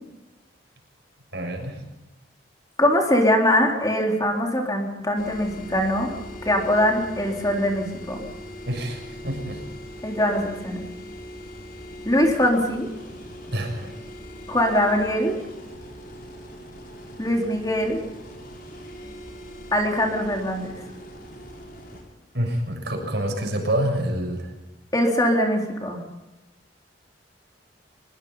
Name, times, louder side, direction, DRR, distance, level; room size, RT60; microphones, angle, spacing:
voice 1, 1.3-1.8 8.7-9.6 13.5-13.9 22.3-24.5, right 1 dB, 65° right, 3 dB, 6.8 m, -27 dB
voice 2, 2.8-6.1 6.5-8.2 10.0-10.8 12.1-12.9 14.5-15.4 17.2-18.0 19.7-20.7 24.9-26.0, left 1 dB, 20° left, 1 dB, 3.8 m, -22 dB
sound 1, 5.2-22.0, equal, 50° left, 7.0 m, -40 dB
24.0 x 22.0 x 5.7 m, 1.0 s
head